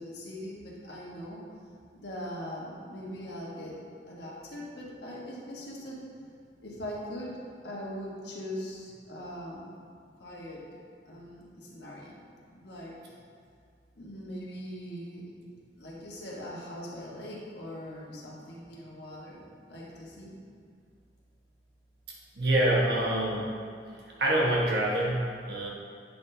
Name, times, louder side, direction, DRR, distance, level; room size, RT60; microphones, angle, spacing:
voice 1, 0.0-1.4 1.9-3.8 4.1-6.0 6.6-7.4 7.6-9.7 10.2-10.6 11.0-12.2 12.5-13.2 14.0-15.3 15.7-19.4 19.7-20.3, equal, 75° left, -4 dB, 1.4 m, -41 dB
voice 2, 22.3-23.5 23.9-25.7, right 1 dB, 65° right, -4 dB, 1.3 m, -26 dB
8.4 x 5.8 x 2.8 m, 2.2 s
head